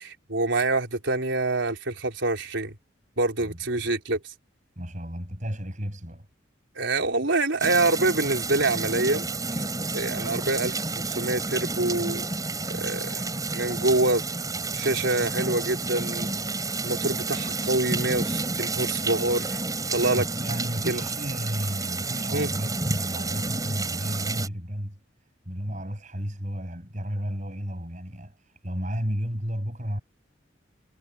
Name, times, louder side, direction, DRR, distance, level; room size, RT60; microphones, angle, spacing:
voice 1, 0.0-2.7 3.2-4.2 6.8-9.3 9.9-12.2 12.7-13.2 13.5-14.2 14.7-16.3 16.8-19.6 19.9-20.2 20.9-21.0 22.3-22.5, right 2 dB, 75° right, 4.1 m, -26 dB
voice 2, 4.8-6.3 20.1-25.0 25.5-30.0, equal, 40° right, 7.5 m, -33 dB
sound 1, 7.6-24.5, right 3 dB, 20° right, 6.9 m, -30 dB
head